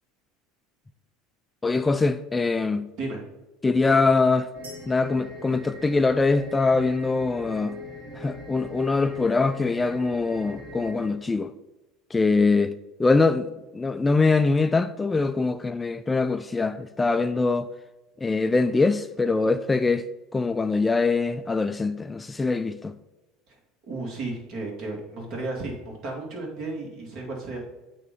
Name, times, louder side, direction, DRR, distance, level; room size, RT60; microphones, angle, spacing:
voice 1, 1.6-2.9 3.6-4.5 4.9-7.8 8.1-11.5 12.1-12.7 13.0-17.7 18.2-20.1 20.3-23.0, left 3 dB, 15° left, 0.3 m, -23 dB
sound 1, 4.5-11.1, left 1 dB, 35° right, 1.7 m, -41 dB
sound 2, 4.6-6.6, right 2 dB, 85° right, 1.3 m, -51 dB
voice 2, 23.9-27.6, right 2 dB, 55° right, 2.3 m, -33 dB
8.2 x 3.1 x 5.3 m
hypercardioid pair, 80°, 0 cm